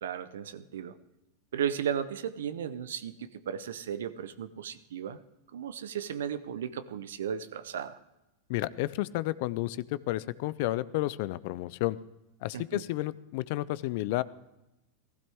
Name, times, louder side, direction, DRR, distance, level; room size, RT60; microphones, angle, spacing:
voice 1, 0.0-1.0 1.5-5.2 5.5-8.0 12.5-12.8, right 8 dB, 80° right, 14 dB, 0.7 m, -35 dB
voice 2, 8.5-12.0 12.4-14.2, left 17 dB, 60° left, 18 dB, 0.5 m, -31 dB
15.5 x 15.0 x 3.6 m, 0.94 s
hypercardioid pair, 100°, 0 cm